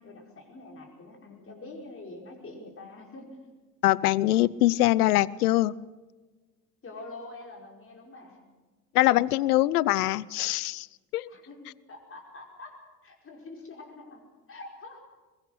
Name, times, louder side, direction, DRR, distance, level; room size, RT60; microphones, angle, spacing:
voice 1, 0.0-3.4 6.8-8.4 11.3-14.2 14.5-15.0, left 2 dB, 25° left, 0 dB, 5.2 m, -45 dB
voice 2, 3.8-5.7 8.9-10.9 11.1-11.3, left 16 dB, 70° left, 23 dB, 0.6 m, -23 dB
22.5 x 22.0 x 6.3 m, 1.3 s
figure-of-eight pair, 65°, 48 cm